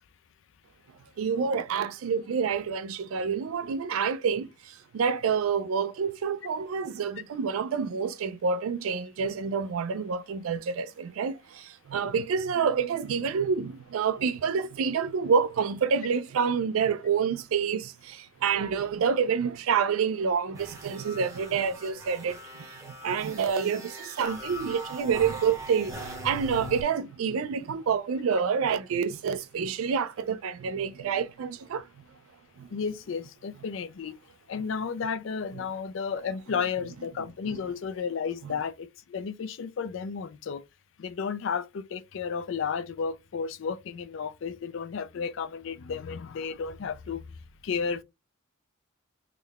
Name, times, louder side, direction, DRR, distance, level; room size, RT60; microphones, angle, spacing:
voice 1, 1.2-4.5 4.9-26.0 26.2-31.8 32.6-32.7, right 6 dB, 80° right, 0.4 m, -28 dB
sound 1, 20.6-26.8, equal, 15° right, 0.8 m, -41 dB
voice 2, 32.7-34.2 34.5-40.6 41.0-47.3 47.6-48.0, left 6 dB, 60° left, 0.4 m, -33 dB
3.7 x 2.1 x 3.4 m
head